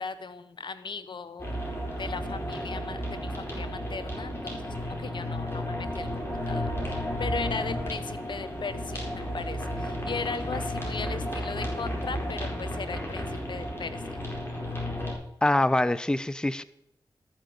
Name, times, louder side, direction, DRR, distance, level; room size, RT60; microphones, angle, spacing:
voice 1, 0.0-1.6 2.0-14.2, left 5 dB, 70° left, 13 dB, 0.9 m, -38 dB
sound 1, 1.4-15.1, equal, 30° left, 4.5 m, -33 dB
voice 2, 15.4-16.6, left 1 dB, 10° left, 16 dB, 0.5 m, -24 dB
13.0 x 6.4 x 6.9 m, 0.78 s
cardioid pair, 45°, 8 cm